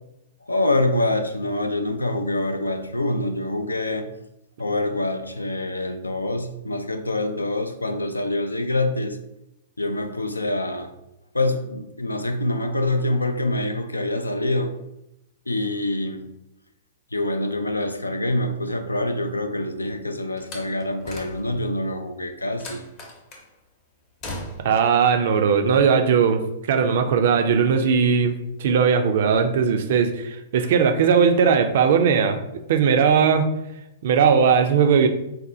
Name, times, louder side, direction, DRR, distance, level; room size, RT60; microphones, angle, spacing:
voice 1, 0.5-4.1 4.6-9.2 9.8-10.9 11.3-14.7 15.5-16.3 17.1-22.8, left 1 dB, 85° left, 7 dB, 0.3 m, -25 dB
Slam, 20.4-21.7 22.6-23.5 24.2-24.8, left 1 dB, 35° left, 0.7 m, -37 dB
voice 2, 24.6-32.4 32.7-33.5 34.0-35.1, right 6 dB, 55° right, 7 dB, 0.3 m, -19 dB
4.1 x 2.1 x 2.6 m, 0.87 s
figure-of-eight pair, 110°, 0 cm